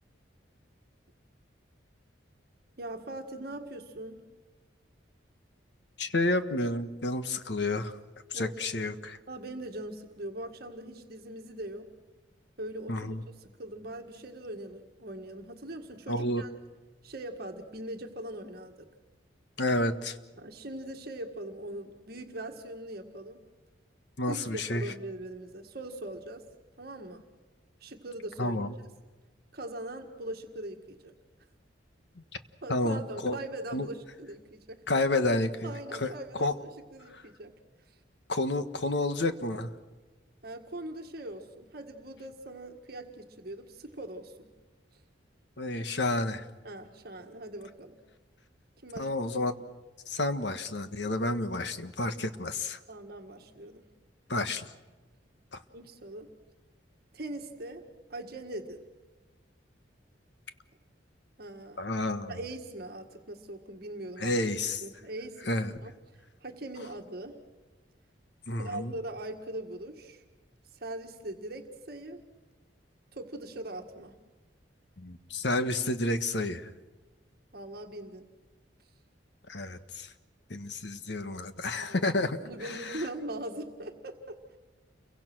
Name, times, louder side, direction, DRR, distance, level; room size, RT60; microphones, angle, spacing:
voice 1, 2.8-4.2 8.3-8.9 9.3-11.9 12.6-16.5 17.0-18.9 20.4-23.4 24.3-26.4 26.8-27.2 27.8-28.6 29.5-31.1 32.6-35.1 35.6-36.6 36.9-37.5 37.9-38.0 40.4-44.5 46.6-48.0 48.8-49.1 52.9-53.8 55.7-56.3 57.1-57.8 58.1-58.8 61.4-61.8 62.3-64.4 64.8-65.5 65.8-65.9 66.4-67.4 68.5-70.2 70.8-72.2 73.1-74.2 77.5-78.3 81.8-82.1 82.4-84.4, right 1 dB, 55° right, 3 dB, 1.8 m, -41 dB
voice 2, 6.0-8.0 8.3-9.2 12.9-13.2 16.1-16.4 19.6-20.2 24.2-24.9 28.4-28.7 32.7-33.4 33.7-33.9 34.9-36.6 37.1-37.2 38.3-39.7 45.6-46.5 49.0-49.6 50.1-52.8 54.3-54.6 55.5-55.6 61.8-62.4 64.2-64.8 65.5-65.8 68.5-68.9 75.0-76.7 79.5-80.1 80.5-83.0, left 2 dB, 65° left, 10 dB, 1.4 m, -30 dB
29.5 x 23.5 x 6.2 m, 1.3 s
head